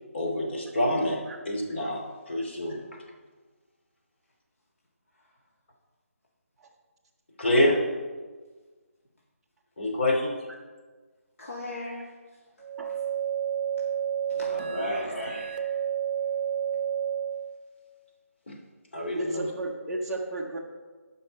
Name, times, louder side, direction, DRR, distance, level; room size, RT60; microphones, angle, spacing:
voice 1, 0.1-2.9 7.4-7.8 9.8-10.3 14.5-15.0 18.5-18.6 18.9-19.5, left 1 dB, 50° left, -1 dB, 2.6 m, -27 dB
voice 2, 11.4-12.1 12.5-13.0 14.3-15.8, left 2 dB, 65° left, -5 dB, 2.3 m, -40 dB
sound 1, 12.6-17.5, right 9 dB, 40° right, 0.7 m, -30 dB
voice 3, 19.1-20.6, right 2 dB, 5° right, -6 dB, 0.6 m, -33 dB
12.0 x 5.7 x 5.2 m, 1.4 s
figure-of-eight pair, 175°, 8 cm